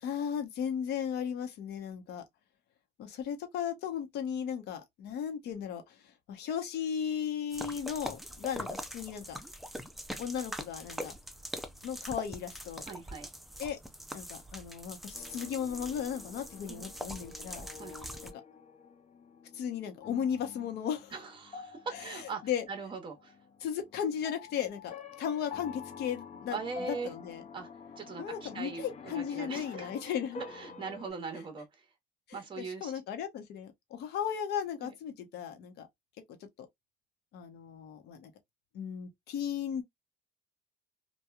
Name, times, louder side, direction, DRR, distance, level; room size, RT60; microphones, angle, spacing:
voice 1, 0.0-2.2 3.0-6.0 6.3-9.4 10.2-11.1 11.8-12.8 13.6-13.8 14.1-17.7 18.2-18.3 19.5-21.1 21.9-22.6 23.6-26.6 26.9-27.4 28.2-30.4 32.3-35.9 37.3-38.3 38.7-39.8, left 8 dB, 75° left, 0.8 m, -36 dB
sound 1, 7.5-18.3, equal, ahead, 0.4 m, -43 dB
voice 2, 12.9-13.3 16.7-16.9 17.8-17.9 21.1-22.4 22.7-23.3 26.5-27.1 27.5-27.7 28.0-29.9 30.5-31.7 32.3-32.9 34.8-34.9, right 4 dB, 30° right, 0.9 m, -40 dB
sound 2, 15.1-31.1, left 5 dB, 40° left, 0.6 m, -49 dB
2.9 x 2.3 x 2.2 m
cardioid pair, 110°, 17 cm